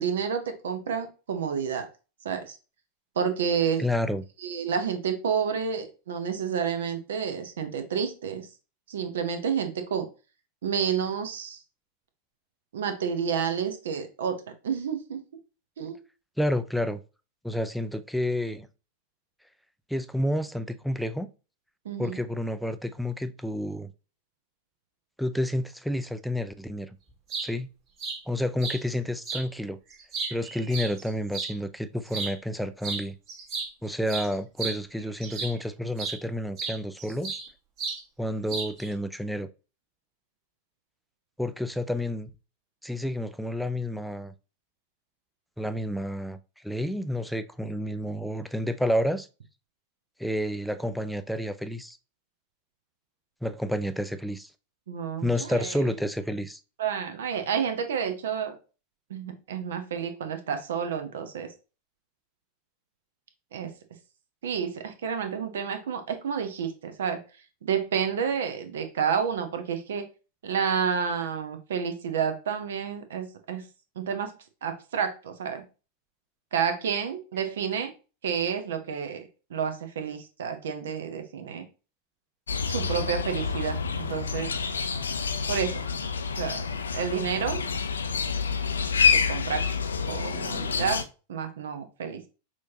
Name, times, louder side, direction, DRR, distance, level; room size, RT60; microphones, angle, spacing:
voice 1, 0.0-1.9 2.2-2.6 3.2-3.8 4.4-8.5 8.9-10.1 10.6-11.6 12.7-14.4 14.6-15.2 15.8-16.0 21.8-22.2 54.9-55.8 56.8-58.5 59.1-61.5 63.5-63.7 64.4-67.2 67.6-70.1 70.4-73.7 74.0-74.3 74.6-75.6 76.5-77.9 78.2-81.7 82.7-84.5 85.5-85.8 86.3-86.6 86.9-87.7 89.1-89.6 90.1-91.0 91.3-92.3, right 7 dB, 60° right, 0.9 m, -30 dB
voice 2, 3.8-4.2 16.4-17.0 17.4-18.7 19.9-21.3 22.0-23.9 25.2-26.9 27.4-27.7 28.3-29.8 30.3-33.2 33.8-37.4 38.2-39.5 41.4-42.3 42.8-44.3 45.6-46.4 46.6-49.3 50.2-52.0 53.4-54.5 55.2-56.6, left 1 dB, ahead, 0.4 m, -30 dB
sound 1, 27.1-27.5 28.0-28.2 28.6-28.8 29.2-29.4 29.9-31.5 32.1-32.3 32.8-33.0 33.3-35.6 36.0-36.2 36.6-37.5 37.8-38.0 38.5-38.9, right 4 dB, 35° right, 1.6 m, -33 dB
sound 2, 82.5-91.0, left 5 dB, 70° left, 0.4 m, -28 dB
6.1 x 2.9 x 2.8 m
figure-of-eight pair, 90°, 0 cm